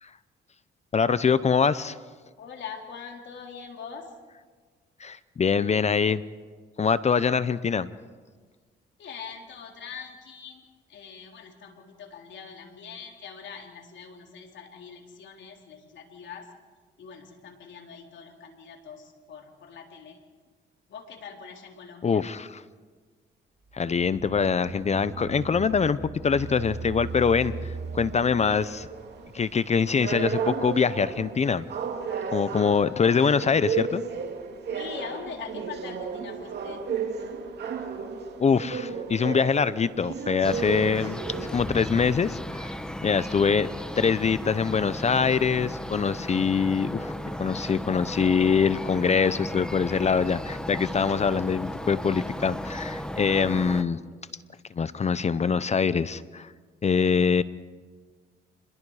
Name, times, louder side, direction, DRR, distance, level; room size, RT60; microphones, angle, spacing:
voice 1, 0.9-2.0 5.0-6.2 6.8-7.9 22.0-22.6 23.7-28.9 29.3-31.6 32.3-34.0 38.4-41.2 41.5-42.7 43.0-43.7 44.0-47.1 47.4-54.0 54.7-56.5 56.8-57.4, left 6 dB, 35° left, 15 dB, 0.7 m, -24 dB
voice 2, 2.4-4.1 9.0-10.6 10.9-16.5 17.0-20.2 20.9-22.2 34.7-36.8, left 6 dB, 65° left, 2 dB, 3.8 m, -42 dB
sound 1, 23.6-28.7, right 4 dB, 40° right, 2.1 m, -38 dB
sound 2, 26.3-41.7, right 6 dB, 55° right, 2.8 m, -34 dB
sound 3, 40.4-53.8, equal, 5° left, 1.4 m, -35 dB
28.5 x 21.5 x 4.9 m, 1.5 s
cardioid pair, 90°, 20 cm